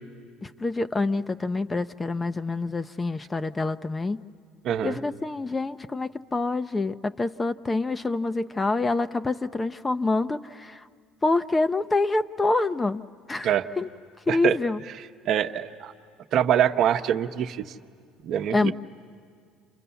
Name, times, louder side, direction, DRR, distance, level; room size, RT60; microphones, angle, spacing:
voice 1, 0.4-4.2 4.8-10.8 11.2-13.0 13.3-13.9 14.3-14.8 18.5-18.7, left 3 dB, 20° left, 11 dB, 0.6 m, -26 dB
voice 2, 4.6-5.0 13.4-13.7 14.3-14.6 15.3-15.9 16.3-17.6 18.2-18.7, right 10 dB, 60° right, 7 dB, 0.9 m, -24 dB
29.5 x 27.5 x 7.0 m, 2.1 s
supercardioid pair, 80°, 0 cm